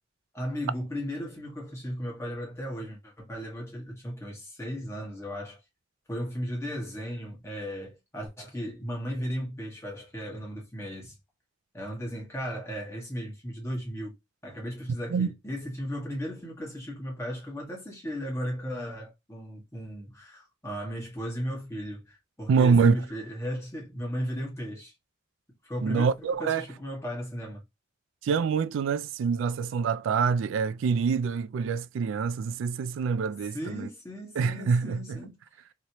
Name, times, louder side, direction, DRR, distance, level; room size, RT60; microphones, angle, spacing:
voice 1, 0.3-5.6 6.1-11.2 11.7-14.1 14.4-24.9 25.6-27.6 33.5-35.4, equal, 15° left, 1.4 m, -36 dB
voice 2, 22.5-22.9 25.8-26.6 28.2-33.9 34.4-35.2, right 5 dB, 80° right, 0.3 m, -26 dB
3.0 x 2.9 x 2.8 m
head